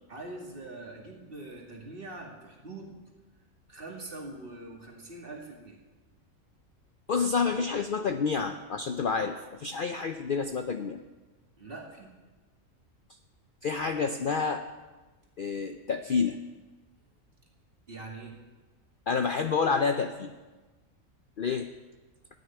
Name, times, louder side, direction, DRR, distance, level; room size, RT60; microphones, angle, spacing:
voice 1, 0.1-3.0 3.7-5.8 11.6-12.1 17.9-18.4, right 2 dB, 40° right, -2 dB, 2.5 m, -43 dB
voice 2, 7.1-11.0 13.6-14.7 15.4-16.4 19.1-20.4 21.4-21.7, left 5 dB, 55° left, 7 dB, 0.6 m, -29 dB
13.0 x 6.5 x 9.8 m, 1.2 s
omnidirectional pair, 1.4 m